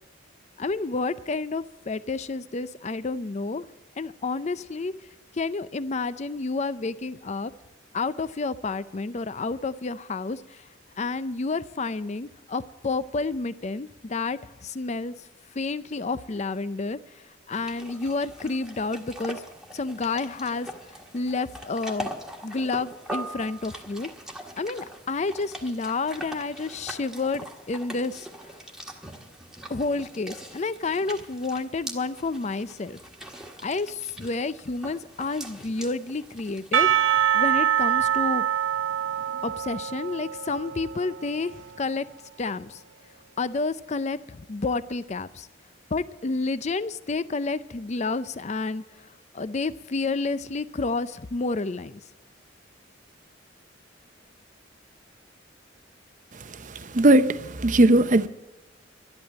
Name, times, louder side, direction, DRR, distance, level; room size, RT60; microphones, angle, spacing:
voice 1, 0.6-3.7 4.0-4.9 5.3-7.5 7.9-10.7 11.0-15.1 15.5-19.4 19.7-22.1 22.4-24.1 24.6-28.3 29.7-33.0 33.6-38.4 39.4-42.0 42.4-42.8 43.4-45.5 45.9-49.1 49.3-52.0, left 3 dB, 35° left, 0.5 m, -30 dB
sound 1, 17.5-36.8, right 1 dB, 5° right, 1.5 m, -42 dB
Percussion / Church bell, 36.7-42.0, right 10 dB, 80° right, 0.8 m, -25 dB
voice 2, 56.6-58.3, right 1 dB, 40° right, 0.7 m, -19 dB
12.0 x 11.5 x 7.5 m
head